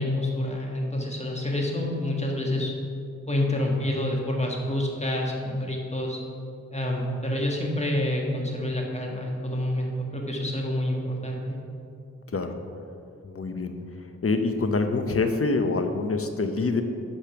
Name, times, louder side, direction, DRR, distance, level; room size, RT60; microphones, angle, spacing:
voice 1, 0.0-2.7 3.3-6.2 6.7-11.6, left 1 dB, 20° left, -1 dB, 1.5 m, -28 dB
voice 2, 12.3-12.6 13.2-13.8 14.2-16.8, left 3 dB, 45° left, 7 dB, 0.8 m, -25 dB
8.3 x 5.2 x 5.9 m, 2.5 s
wide cardioid pair, 85°, 31 cm